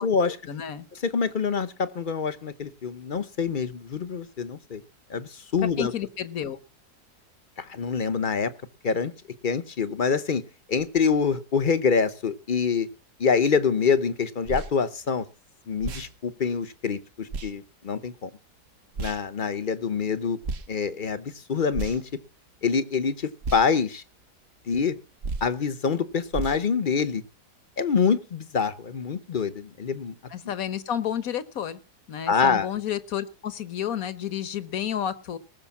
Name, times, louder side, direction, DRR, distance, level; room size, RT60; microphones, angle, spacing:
voice 1, 0.0-0.9 5.8-6.6 30.3-31.8 32.1-35.4, left 9 dB, 65° left, 14 dB, 1.4 m, -31 dB
voice 2, 1.0-4.8 5.1-5.9 7.6-8.5 8.8-9.1 9.4-10.4 10.7-12.9 13.2-15.3 15.7-18.3 19.0-20.4 20.7-22.0 22.6-24.0 24.7-24.9 25.4-27.2 27.8-30.1 32.3-32.7, left 5 dB, 40° left, 13 dB, 0.8 m, -25 dB
sound 1, 14.5-14.7 15.8-16.1 17.3-17.5 19.0-19.2 20.4-20.7 21.7-22.2 23.4-23.7 25.2-25.5 26.3-26.6, right 3 dB, 55° right, 1.4 m, -32 dB
19.0 x 6.7 x 7.1 m, 0.35 s
omnidirectional pair, 1.7 m